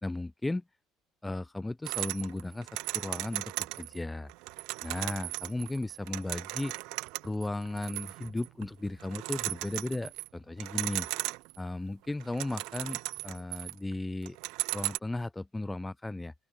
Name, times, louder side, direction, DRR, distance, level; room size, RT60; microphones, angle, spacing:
voice 1, 0.0-0.6 1.2-4.3 4.8-6.7 7.2-11.1 11.6-14.4 14.7-16.3, left 2 dB, 5° left, 0.4 m, -35 dB
sound 1, 1.9-4.0 4.3-8.7 9.0-10.3 10.6-11.7 12.1-13.9 14.3-15.0, right 25 dB, 75° right, 0.7 m, -37 dB
open air
cardioid pair, 165°, 0 cm